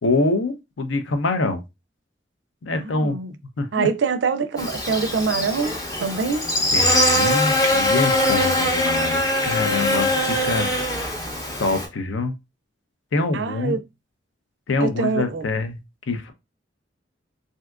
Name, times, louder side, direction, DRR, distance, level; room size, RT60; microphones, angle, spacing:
voice 1, 0.0-1.6 2.6-3.2 3.6-3.9 6.7-10.7 11.6-12.3 13.1-13.8 14.7-15.8 16.1-16.3, left 3 dB, 85° left, 0.5 m, -25 dB
voice 2, 2.7-3.3 3.7-6.5 13.3-13.8 14.8-15.4, right 5 dB, 65° right, 0.4 m, -24 dB
Buzz, 4.6-11.9, left 1 dB, 20° left, 0.6 m, -22 dB
3.4 x 2.7 x 2.3 m
head